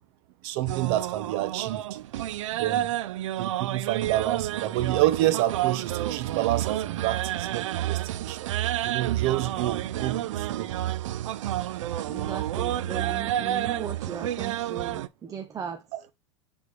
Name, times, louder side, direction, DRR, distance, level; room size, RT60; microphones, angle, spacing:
voice 1, 0.4-2.0 2.5-3.0 3.4-8.5 8.8-10.7 15.9-16.0, right 15 dB, 55° right, 0.9 m, -28 dB
sound 1, 0.7-15.1, right 13 dB, 80° right, 0.5 m, -30 dB
voice 2, 12.1-15.8, right 7 dB, 20° right, 0.7 m, -37 dB
8.5 x 3.5 x 3.3 m
supercardioid pair, 120°, 16 cm